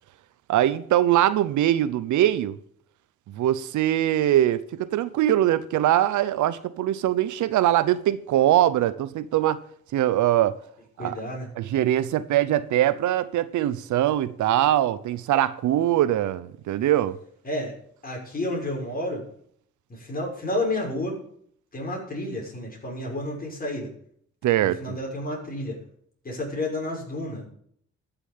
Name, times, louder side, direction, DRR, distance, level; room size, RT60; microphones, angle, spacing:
voice 1, 0.5-2.6 3.3-9.6 9.9-10.5 11.0-11.2 11.6-17.2 24.4-25.0, right 12 dB, 75° right, 0.8 m, -22 dB
voice 2, 11.0-11.5 17.4-17.7 18.0-19.2 19.9-21.2 21.7-23.9 24.4-25.8 26.2-27.4, left 1 dB, 30° left, 6.2 m, -30 dB
13.5 x 7.0 x 7.4 m
cardioid pair, 90°, 30 cm